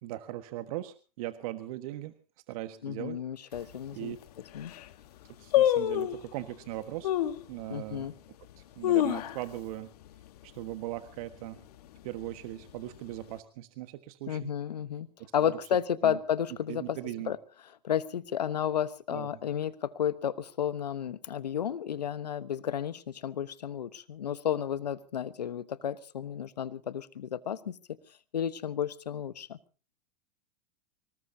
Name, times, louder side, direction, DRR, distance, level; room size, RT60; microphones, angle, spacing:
voice 1, 0.0-2.1 2.5-3.2 3.4-4.2 5.4-7.1 7.5-8.1 8.6-9.9 10.4-11.6 12.0-14.5 15.5-15.6 16.0-16.2 16.7-17.3 19.1-19.3, right 15 dB, 60° right, 9 dB, 1.5 m, -39 dB
voice 2, 2.8-4.2 4.5-4.7 7.7-8.1 14.3-15.1 15.3-17.0 17.3-17.4 17.8-27.8 28.3-29.6, left 9 dB, 85° left, 15 dB, 1.2 m, -32 dB
sound 1, 3.5-3.6 4.2-4.3 4.5-4.9 5.5-6.3 7.0-7.4 8.0-8.1 8.6-9.7 10.0-10.1 10.4-10.8 11.2-11.6 12.2-13.0 13.2-13.3, left 12 dB, 70° left, 1.5 m, -27 dB
24.5 x 19.5 x 2.8 m, 0.36 s
hypercardioid pair, 100°, 20 cm